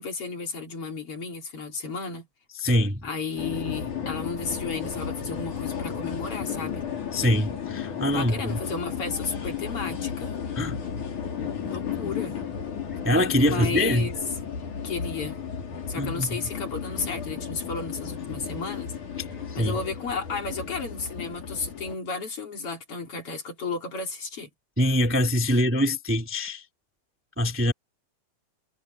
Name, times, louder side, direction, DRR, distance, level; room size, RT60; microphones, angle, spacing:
voice 1, 0.0-2.3 3.0-6.8 8.1-10.3 11.6-12.3 13.4-14.2 14.8-15.4 15.9-18.9 19.5-24.5, left 4 dB, 50° left, 4.1 m, -33 dB
voice 2, 2.6-3.1 7.1-8.3 10.6-10.8 13.0-14.1 15.9-16.4 19.5-19.8 24.8-26.6 27.4-27.7, equal, 5° right, 1.9 m, -24 dB
sound 1, 3.4-22.0, left 7 dB, 85° left, 5.3 m, -34 dB
omnidirectional pair, 3.4 m